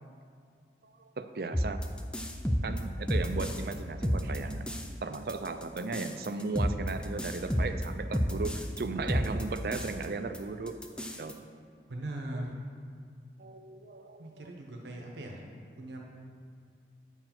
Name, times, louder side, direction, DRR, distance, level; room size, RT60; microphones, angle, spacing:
voice 1, 0.8-1.8 2.6-10.8 11.1-11.4 12.3-12.4 13.4-14.5, right 3 dB, 55° right, 9 dB, 0.4 m, -36 dB
sound 1, 1.5-3.7 4.0-4.9 5.1-8.8 9.1-10.0 10.3-10.4 10.7-11.3, equal, 5° left, 0.4 m, -31 dB
voice 2, 11.9-12.6 14.2-15.4 15.8-16.0, right 1 dB, 80° right, 0 dB, 0.9 m, -39 dB
8.7 x 4.6 x 5.8 m, 2.2 s
head